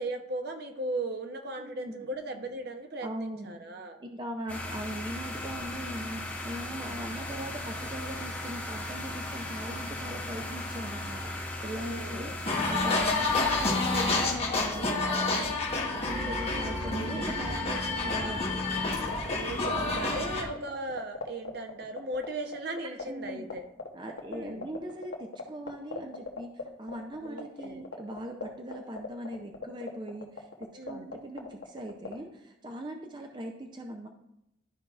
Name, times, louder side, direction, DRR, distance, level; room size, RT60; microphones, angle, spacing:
voice 1, 0.0-4.0 6.7-7.0 11.7-12.3 15.8-16.0 16.5-16.8 19.3-23.6 24.3-24.7 27.2-27.8 30.7-31.1, right 2 dB, 55° right, 6 dB, 0.8 m, -37 dB
voice 2, 1.6-2.1 3.0-3.6 4.0-11.3 11.6-18.5 19.7-20.3 23.1-23.5 23.9-34.1, right 1 dB, 25° right, 3 dB, 0.5 m, -40 dB
sound 1, 4.5-14.4, left 1 dB, 10° left, 1.0 m, -37 dB
sound 2, 12.4-20.4, left 3 dB, 30° left, 1.1 m, -29 dB
sound 3, 18.8-32.1, left 4 dB, 85° left, 1.1 m, -37 dB
12.5 x 4.6 x 2.4 m, 0.85 s
head